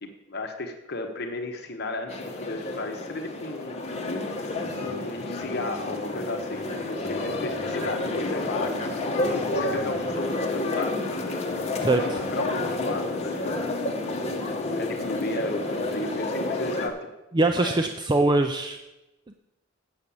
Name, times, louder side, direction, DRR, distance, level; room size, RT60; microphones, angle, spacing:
voice 1, 0.0-3.9 4.7-8.7 9.3-11.4 12.3-13.7 14.7-17.1 17.5-17.8, left 2 dB, 55° left, 4 dB, 1.0 m, -34 dB
sound 1, 2.1-16.9, left 2 dB, 35° left, 1.2 m, -30 dB
voice 2, 11.8-12.2 17.3-18.8, right 2 dB, 20° right, 5 dB, 0.4 m, -23 dB
8.0 x 7.3 x 7.0 m, 1.0 s
head